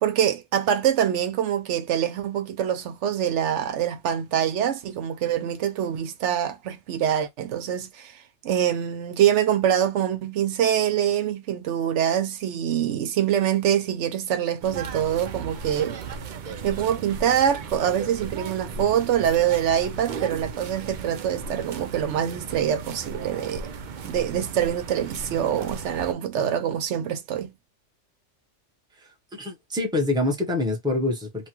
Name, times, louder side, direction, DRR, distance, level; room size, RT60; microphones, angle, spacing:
voice 1, 0.0-16.0 16.6-23.7 24.0-27.5, right 9 dB, 80° right, 0.9 m, -25 dB
sound 1, 14.6-26.1, right 5 dB, 55° right, 0.5 m, -36 dB
voice 2, 29.3-31.5, left 2 dB, 5° right, 0.7 m, -25 dB
2.9 x 2.3 x 2.9 m
omnidirectional pair, 1.2 m